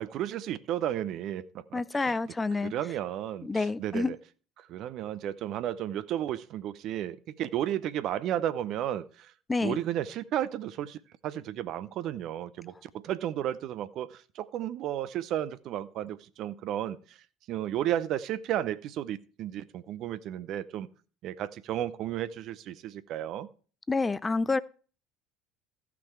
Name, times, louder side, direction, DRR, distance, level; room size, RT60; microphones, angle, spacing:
voice 1, 0.0-2.2 2.6-4.2 4.6-9.3 9.6-11.0 11.2-17.2 17.5-20.9 21.2-23.5, right 11 dB, 55° right, 0.7 m, -33 dB
voice 2, 1.7-2.7 3.4-4.1 9.5-9.8 23.9-24.6, left 3 dB, 20° left, 0.5 m, -28 dB
14.5 x 6.0 x 4.6 m
hypercardioid pair, 65°, 0 cm